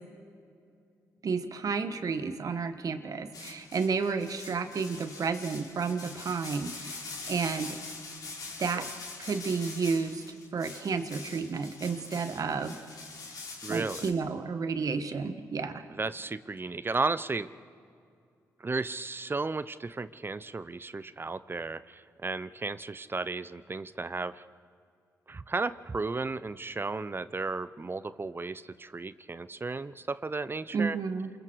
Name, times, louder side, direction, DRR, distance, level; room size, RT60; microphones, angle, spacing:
voice 1, 1.2-7.8 8.6-8.9 9.2-12.8 13.7-15.8 30.7-31.3, right 5 dB, 60° right, 9 dB, 1.6 m, -31 dB
sound 1, 3.3-14.1, left 4 dB, 65° left, 4.1 m, -43 dB
voice 2, 13.6-14.1 15.9-17.5 18.6-24.4 25.3-31.0, right 3 dB, 30° right, 15 dB, 0.8 m, -34 dB
28.5 x 22.0 x 4.8 m, 2.3 s
supercardioid pair, 50°, 7 cm